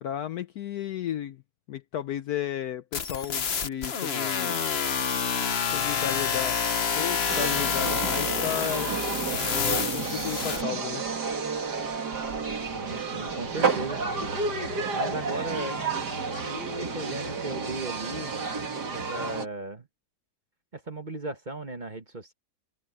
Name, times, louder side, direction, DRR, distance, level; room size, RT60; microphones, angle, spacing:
voice 1, 0.0-1.4 1.7-4.6 5.7-6.6 7.0-9.0 9.3-11.0, left 10 dB, 65° left, 1.0 m, -34 dB
sound 1, 2.9-10.6, left 6 dB, 40° left, 1.0 m, -28 dB
sound 2, 7.3-19.5, right 4 dB, 60° right, 3.2 m, -31 dB
voice 2, 12.7-14.0 14.9-15.8 16.5-18.4 18.9-19.9 20.7-22.3, right 2 dB, 25° right, 1.5 m, -36 dB
open air
omnidirectional pair, 2.0 m